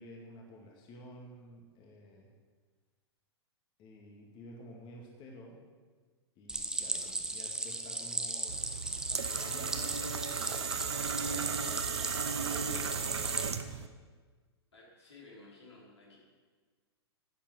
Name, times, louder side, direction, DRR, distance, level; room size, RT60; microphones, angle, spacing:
voice 1, 0.0-2.3 3.8-5.6 6.4-8.6 9.1-10.8 11.6-11.9 12.2-13.9, left 1 dB, 35° left, 0 dB, 2.1 m, -52 dB
Stream, 6.5-13.5, right 2 dB, 5° right, 0.9 m, -37 dB
sound 1, 8.5-13.9, right 6 dB, 75° right, 0.8 m, -36 dB
voice 2, 14.7-16.2, left 3 dB, 80° left, -4 dB, 4.4 m, -55 dB
10.5 x 9.3 x 6.3 m, 1.5 s
figure-of-eight pair, 105°, 14 cm